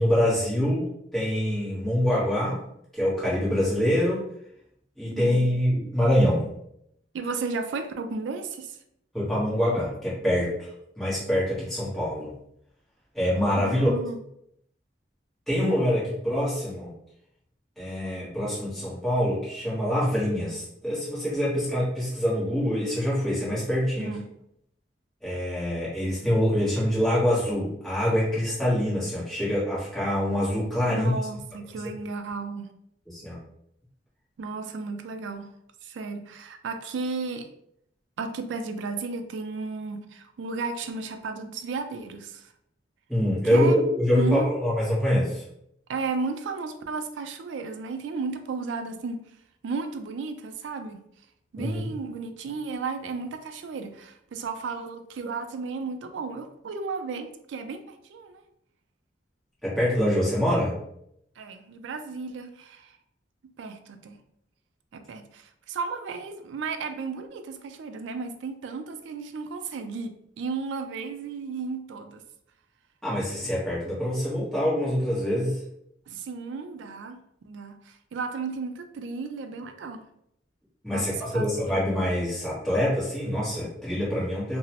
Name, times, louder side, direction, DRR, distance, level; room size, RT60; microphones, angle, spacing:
voice 1, 0.0-2.6 2.9-4.2 5.0-6.5 9.1-10.7 11.0-12.3 13.1-13.9 15.5-16.9 17.8-24.1 25.2-31.1 33.1-33.4 43.1-45.4 51.6-51.8 59.6-60.8 73.0-75.6 80.8-84.6, equal, ahead, -9 dB, 1.0 m, -25 dB
voice 2, 5.1-5.4 7.1-8.8 13.6-14.2 24.0-24.3 30.8-32.7 34.4-35.5 35.8-37.5 38.2-42.4 43.5-43.8 44.1-44.5 45.9-49.2 49.6-51.0 51.5-58.4 61.4-62.9 63.6-64.2 64.9-72.2 76.1-77.2 77.4-80.0 80.9-81.6, right 4 dB, 80° right, 8 dB, 0.3 m, -34 dB
2.8 x 2.0 x 2.8 m, 0.75 s
head